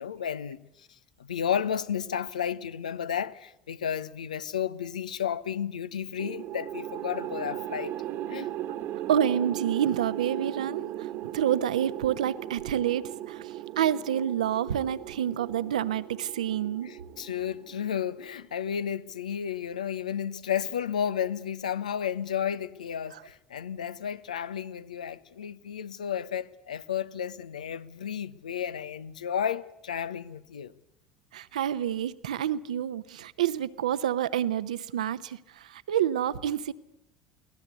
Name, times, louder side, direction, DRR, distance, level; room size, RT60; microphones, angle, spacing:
voice 1, 0.0-8.0 8.3-8.5 16.8-30.7, left 8 dB, 80° left, 0.8 m, -32 dB
sound 1, 6.2-18.5, right 13 dB, 50° right, 1.3 m, -37 dB
voice 2, 9.1-11.1 11.3-16.9 23.1-23.2 31.3-36.7, right 10 dB, 75° right, 0.8 m, -28 dB
23.5 x 18.5 x 8.2 m
figure-of-eight pair, 70°, 4 cm